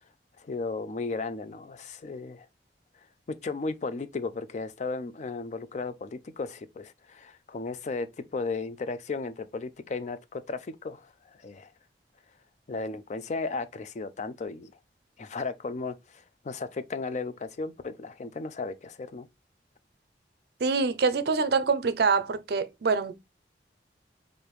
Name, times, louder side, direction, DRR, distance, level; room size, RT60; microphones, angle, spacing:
voice 1, 0.4-2.5 3.3-8.1 8.3-11.1 11.4-11.7 12.7-14.7 15.2-19.3, left 3 dB, 40° left, 0.4 m, -35 dB
voice 2, 20.6-23.1, right 4 dB, 60° right, 0.5 m, -25 dB
4.9 x 2.6 x 3.1 m
head